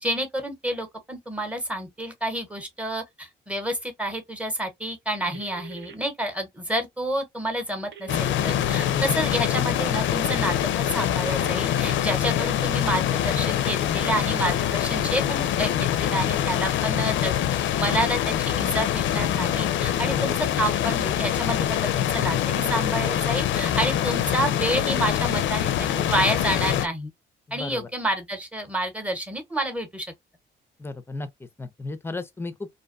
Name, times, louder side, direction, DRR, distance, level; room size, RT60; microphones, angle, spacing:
voice 1, 0.0-17.3 17.8-27.1 27.5-30.1, right 1 dB, 5° right, 0.9 m, -29 dB
sound 1, 5.3-5.9 7.9-8.9 10.9-11.9 13.9-14.9, right 7 dB, 65° right, 0.7 m, -43 dB
sound 2, 8.1-26.9, left 11 dB, 70° left, 0.4 m, -24 dB
voice 2, 20.0-20.4 23.7-23.9 27.5-27.9 30.8-32.7, left 2 dB, 10° left, 0.5 m, -35 dB
2.5 x 2.2 x 2.4 m
cardioid pair, 90°, 20 cm